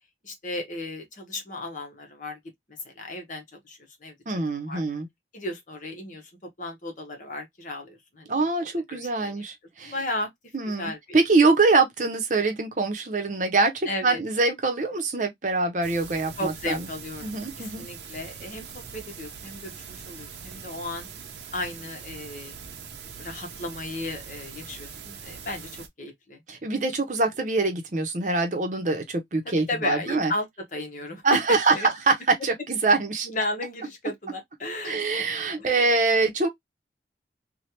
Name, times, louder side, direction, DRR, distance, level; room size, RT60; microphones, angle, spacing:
voice 1, 0.2-2.4 2.7-4.1 4.7-4.8 5.3-6.3 6.6-8.3 8.6-9.4 9.8-10.3 10.8-11.2 13.8-14.2 16.4-21.1 21.5-22.5 23.2-26.4 29.4-31.2 31.5-31.9 33.2-35.3 35.6-35.8, left 2 dB, 45° left, 1.0 m, -35 dB
voice 2, 4.3-5.1 8.3-9.9 10.5-16.9 17.2-17.9 26.5-30.3 31.2-31.7 32.1-32.2 32.4-33.3 34.8-36.5, right 3 dB, 45° right, 0.7 m, -24 dB
sound 1, 15.8-25.9, right 6 dB, 80° right, 0.7 m, -42 dB
3.2 x 2.2 x 2.8 m
head